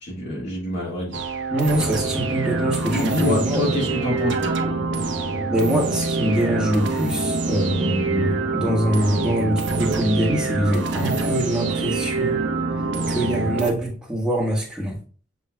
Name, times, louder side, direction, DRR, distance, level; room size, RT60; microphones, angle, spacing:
voice 1, 0.0-1.2 2.9-4.6, left 1 dB, 60° left, 1.5 m, -27 dB
sound 1, 1.1-13.7, right 3 dB, 70° right, 0.9 m, -25 dB
voice 2, 1.5-3.6 5.5-12.4 13.1-15.0, equal, 5° right, 1.5 m, -24 dB
7.3 x 3.2 x 2.3 m
head